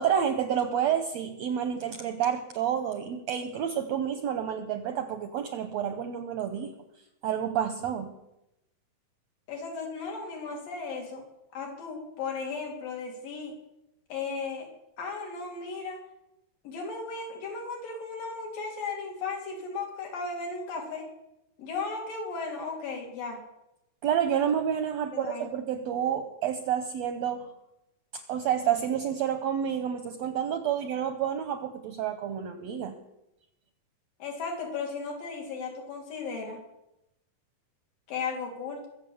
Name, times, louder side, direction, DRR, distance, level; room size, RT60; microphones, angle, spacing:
voice 1, 0.0-6.7 7.2-8.2 24.0-27.5 28.1-33.0, right 9 dB, 75° right, 9 dB, 1.6 m, -29 dB
voice 2, 9.5-11.2 11.5-13.5 14.1-14.7 15.0-16.0 16.6-21.1 21.6-23.4 25.1-25.5 34.2-36.6 38.1-38.9, left 4 dB, 75° left, 1 dB, 4.5 m, -35 dB
22.5 x 7.7 x 7.1 m, 0.89 s
omnidirectional pair, 4.0 m